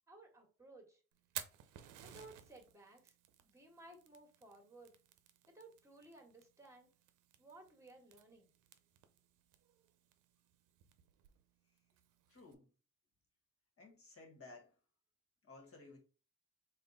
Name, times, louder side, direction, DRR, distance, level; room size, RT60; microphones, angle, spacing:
voice 1, 0.1-1.0 2.0-3.1 3.4-4.9 5.5-6.9 7.4-8.5, right 2 dB, 10° right, 1.4 m, -58 dB
Fire, 1.1-12.5, right 11 dB, 90° right, 0.6 m, -56 dB
voice 2, 12.3-12.7 13.8-14.7 15.4-16.0, left 3 dB, 50° left, 1.5 m, -57 dB
3.5 x 2.4 x 3.9 m
cardioid pair, 90°, 30 cm